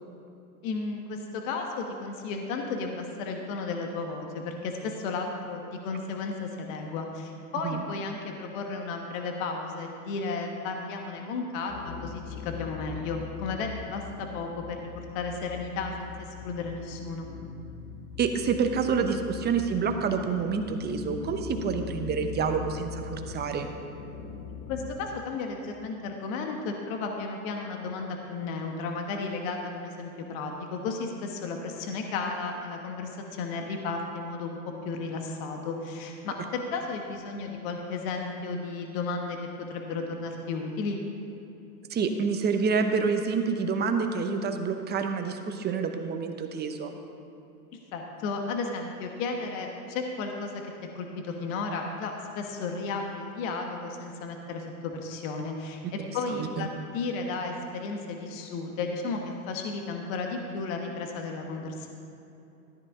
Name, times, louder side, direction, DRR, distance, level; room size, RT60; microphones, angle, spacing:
voice 1, 0.6-16.1 16.4-17.3 24.7-34.6 34.8-39.4 39.7-41.0 47.9-50.6 50.9-55.8 56.1-61.9, left 4 dB, 60° left, 3 dB, 1.4 m, -34 dB
sound 1, 11.7-24.9, left 7 dB, 85° left, 1.3 m, -41 dB
voice 2, 18.2-23.7 41.9-46.9 56.3-56.7, right 5 dB, 20° right, 6 dB, 0.8 m, -28 dB
14.0 x 9.7 x 3.7 m, 2.8 s
hypercardioid pair, 120°, 45 cm